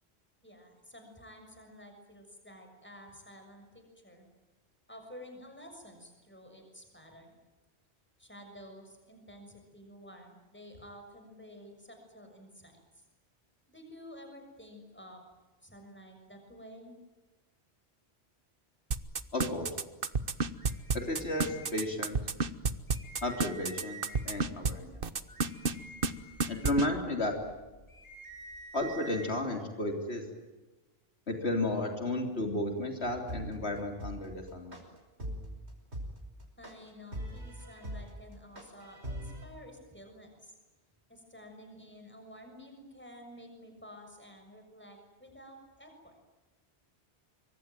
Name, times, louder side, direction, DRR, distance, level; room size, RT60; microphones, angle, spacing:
voice 1, 0.4-4.3 4.9-7.4 8.2-13.0 13.7-15.2 15.6-17.0 36.6-40.5 41.1-46.2, equal, 10° left, 4 dB, 6.6 m, -51 dB
sound 1, 18.9-24.7 25.0-25.7 26.0-26.1 26.4-26.9, right 5 dB, 55° right, 1.4 m, -29 dB
voice 2, 19.3-19.8 20.9-22.2 23.2-25.0 26.5-27.4 28.7-30.3 31.3-34.8, left 1 dB, 75° left, 4 dB, 3.6 m, -33 dB
sound 2, 20.6-22.1 22.5-22.6 22.9-24.4 25.0-29.3, right 2 dB, 45° left, 8.0 m, -49 dB
sound 3, 33.3-39.4, right 1 dB, 80° right, 5.8 m, -40 dB
26.0 x 24.0 x 9.2 m, 1.1 s
omnidirectional pair, 1.1 m